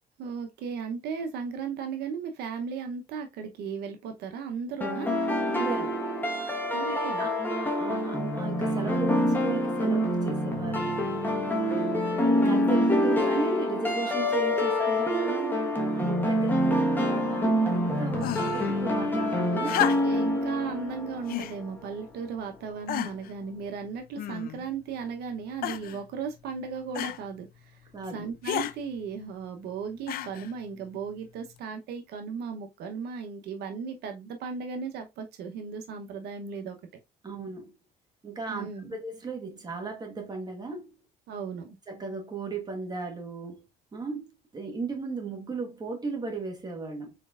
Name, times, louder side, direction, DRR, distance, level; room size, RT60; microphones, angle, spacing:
voice 1, 0.2-5.1 6.7-7.3 19.5-19.7 20.0-27.8 28.1-36.8 38.5-39.0 41.3-41.8, right 6 dB, 75° right, 0.8 m, -36 dB
sound 1, 4.8-21.7, equal, 10° left, 1.2 m, -26 dB
voice 2, 5.4-6.1 6.8-11.0 12.3-19.7 27.9-28.4 37.2-37.7 38.2-40.9 41.9-43.7 43.9-47.1, right 3 dB, 25° right, 1.4 m, -36 dB
sound 2, 18.2-18.7 19.6-20.3 21.3-21.6 22.3-22.4 22.9-23.3 24.2-24.7 25.6-26.0 26.9-27.2 28.4-28.8 30.1-30.5 31.6-31.7, left 13 dB, 60° left, 0.4 m, -31 dB
4.3 x 4.2 x 2.4 m
cardioid pair, 110°, 17 cm